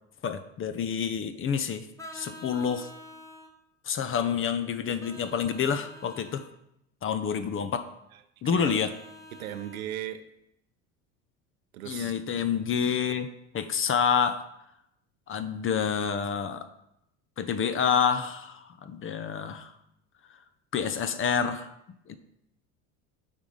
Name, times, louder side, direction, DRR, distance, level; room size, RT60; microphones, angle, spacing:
voice 1, 0.2-1.9 2.1-2.9 3.9-6.4 7.0-7.8 8.4-8.9 11.9-13.3 13.5-14.4 15.3-16.7 17.4-19.7 20.7-21.7 22.1-22.2, left 7 dB, 30° left, 10 dB, 0.7 m, -28 dB
Vehicle horn car horn honking, 2.0-3.5 5.0-6.5 8.6-9.8, equal, 10° left, 1.2 m, -47 dB
voice 2, 8.1-8.8 9.3-10.2 11.7-12.1, right 11 dB, 85° right, 8 dB, 0.9 m, -38 dB
8.8 x 4.0 x 5.0 m, 0.80 s
hypercardioid pair, 80°, 41 cm